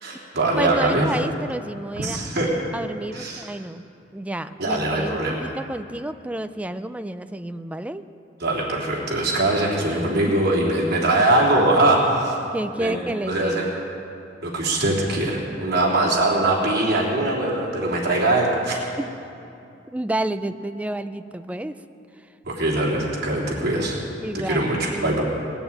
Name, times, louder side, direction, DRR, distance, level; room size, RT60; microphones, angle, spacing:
voice 1, 0.0-1.1 1.9-2.5 3.1-3.5 4.6-5.5 8.4-12.4 12.8-13.0 13.3-13.7 14.4-18.8 22.5-24.0 24.3-25.2, right 2 dB, 55° right, -4 dB, 3.2 m, -22 dB
voice 2, 0.6-2.2 2.7-3.8 4.1-8.0 10.3-10.4 12.5-13.8 19.0-19.1 19.9-21.7 24.2-25.2, right 1 dB, 5° right, 10 dB, 0.4 m, -30 dB
19.5 x 7.1 x 8.7 m, 2.7 s
head